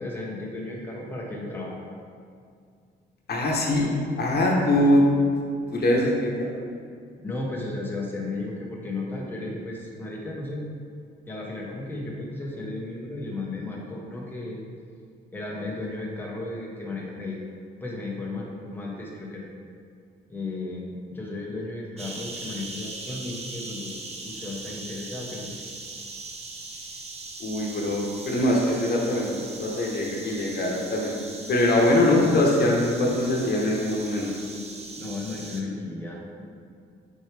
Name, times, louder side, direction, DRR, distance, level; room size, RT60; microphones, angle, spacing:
voice 1, 0.0-1.8 7.2-10.7 11.3-14.6 15.3-17.4 17.8-19.5 20.3-23.9 24.2-25.6 35.0-36.4, left 2 dB, 10° left, -3 dB, 1.0 m, -34 dB
voice 2, 3.3-5.0 5.7-6.5 27.4-31.1 31.5-34.3, left 1 dB, 55° left, -2 dB, 1.1 m, -22 dB
sound 1, 22.0-35.6, right 3 dB, 30° right, 0.7 m, -40 dB
6.3 x 4.6 x 3.3 m, 2.2 s
cardioid pair, 90°, 20 cm